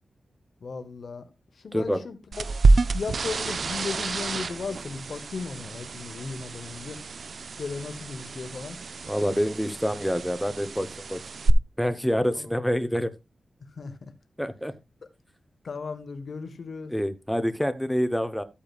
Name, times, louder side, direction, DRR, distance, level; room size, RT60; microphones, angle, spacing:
voice 1, 0.6-1.2 1.6-2.4 2.9-7.0 7.6-8.8 12.4-12.5 13.8-14.1 15.6-16.9, left 4 dB, 65° left, 1.0 m, -36 dB
voice 2, 1.7-2.0 9.1-11.2 11.8-13.1 14.4-14.7 16.9-18.4, equal, ahead, 0.8 m, -27 dB
sound 1, 2.3-11.5, right 3 dB, 60° right, 0.5 m, -28 dB
13.5 x 8.6 x 2.4 m
wide cardioid pair, 120°, 0 cm